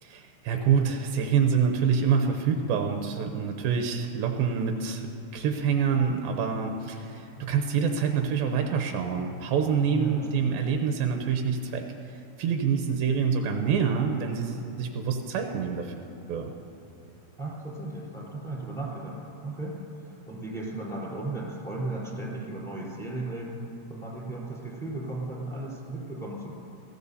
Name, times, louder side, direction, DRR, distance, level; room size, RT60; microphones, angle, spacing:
voice 1, 0.0-15.9 16.3-16.5, right 6 dB, 80° right, 4 dB, 2.2 m, -26 dB
voice 2, 9.9-10.5 17.4-23.6 23.9-26.5, right 2 dB, ahead, -6 dB, 3.2 m, -35 dB
20.0 x 16.0 x 2.8 m, 2.7 s
omnidirectional pair, 4.8 m